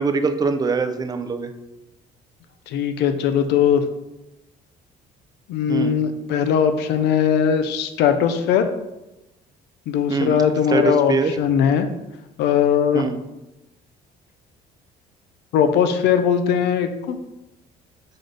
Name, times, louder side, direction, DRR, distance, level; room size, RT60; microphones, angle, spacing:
voice 1, 0.0-1.5 5.7-6.0 10.1-10.4 10.7-11.3 12.9-13.2, right 4 dB, 25° right, 8 dB, 0.4 m, -22 dB
voice 2, 2.7-3.9 5.5-8.7 9.9-11.9 12.4-13.1 15.5-17.2, left 8 dB, 85° left, 8 dB, 0.5 m, -19 dB
3.9 x 3.8 x 3.3 m, 0.97 s
cardioid pair, 110°, 17 cm